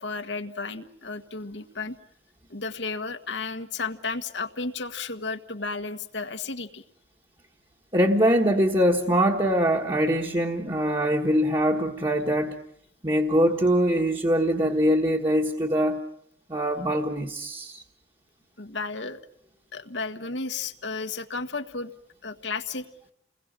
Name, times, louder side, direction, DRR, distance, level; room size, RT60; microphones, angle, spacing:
voice 1, 0.0-2.0 2.5-6.8 18.6-19.2 19.7-21.9 22.2-22.9, left 4 dB, 85° left, 8 dB, 1.6 m, -33 dB
voice 2, 7.9-12.6 13.0-16.0 16.5-17.8, equal, 25° right, 0 dB, 1.4 m, -23 dB
30.0 x 21.0 x 7.6 m, 0.71 s
head